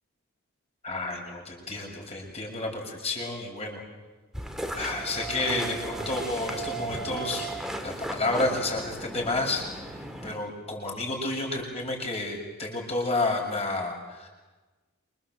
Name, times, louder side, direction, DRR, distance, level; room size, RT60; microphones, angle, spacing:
voice 1, 0.8-3.8 4.7-7.5 7.8-9.6 9.9-14.3, left 2 dB, 30° left, 1 dB, 6.9 m, -30 dB
sound 1, 4.3-10.4, right 2 dB, ahead, 2.5 m, -36 dB
28.0 x 26.0 x 7.8 m, 1.2 s
head